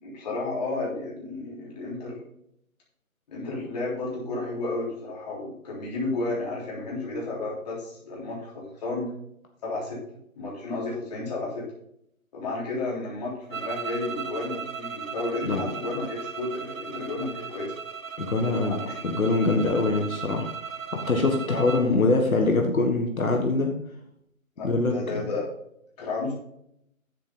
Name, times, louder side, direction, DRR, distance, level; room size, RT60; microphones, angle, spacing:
voice 1, 0.0-2.2 3.3-9.1 9.6-10.0 10.4-11.6 12.3-17.7 18.4-19.0 21.5-21.7 24.6-25.5 26.0-26.3, left 2 dB, 30° left, -4 dB, 3.4 m, -32 dB
sound 1, 13.5-21.9, right 6 dB, 65° right, 0.9 m, -37 dB
voice 2, 18.2-20.5 21.1-23.7 24.6-25.2, left 3 dB, 75° left, 2 dB, 1.8 m, -24 dB
10.0 x 7.4 x 3.9 m, 0.74 s
figure-of-eight pair, 160°, 42 cm